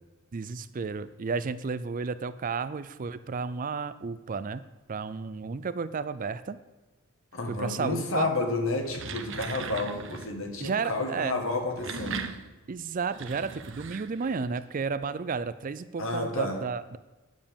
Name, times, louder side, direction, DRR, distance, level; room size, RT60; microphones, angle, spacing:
voice 1, 0.3-4.6 4.9-6.6 7.5-8.3 10.6-11.4 12.7-17.0, right 5 dB, 40° right, 14 dB, 0.4 m, -32 dB
voice 2, 7.3-12.3 16.0-16.6, left 2 dB, 65° left, 3 dB, 1.9 m, -30 dB
sound 1, 8.8-10.4 11.5-14.6, right 5 dB, 60° right, 0.8 m, -39 dB
9.5 x 7.4 x 6.9 m, 1.1 s
head